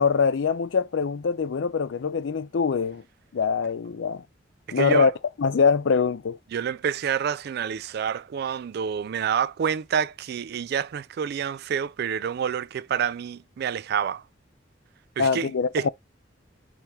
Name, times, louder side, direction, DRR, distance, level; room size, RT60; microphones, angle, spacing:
voice 1, 0.0-3.0 3.3-4.2 4.7-5.1 5.4-6.4 15.2-15.9, left 5 dB, 75° left, 0.4 m, -23 dB
voice 2, 4.7-5.1 6.5-14.2 15.2-15.9, right 7 dB, 55° right, 0.3 m, -28 dB
4.3 x 3.5 x 3.1 m
head